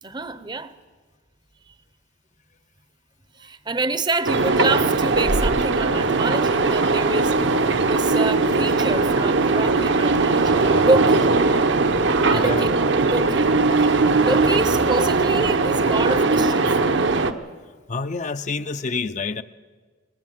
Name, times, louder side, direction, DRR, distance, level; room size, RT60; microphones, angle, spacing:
voice 1, 0.0-0.7 3.4-7.4 7.6-11.3 12.3-12.7 13.0-13.5 13.8-13.9 14.2-16.8, right 2 dB, 20° right, 0.7 m, -27 dB
sound 1, 4.3-17.3, right 3 dB, 60° right, 0.9 m, -19 dB
voice 2, 12.3-12.7 17.9-19.4, left 4 dB, 35° left, 0.5 m, -27 dB
19.5 x 19.0 x 7.6 m
head